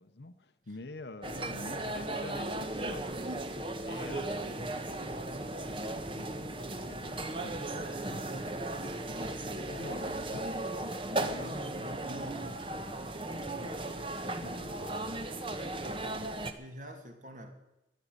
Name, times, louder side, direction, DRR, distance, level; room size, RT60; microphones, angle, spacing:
voice 1, 0.0-9.3 9.7-15.8, left 2 dB, 75° left, 0.9 m, -49 dB
sound 1, 1.2-16.5, right 2 dB, 30° right, 1.1 m, -36 dB
voice 2, 11.4-12.6 16.6-17.5, equal, 45° right, 2.5 m, -48 dB
13.5 x 9.5 x 9.9 m
head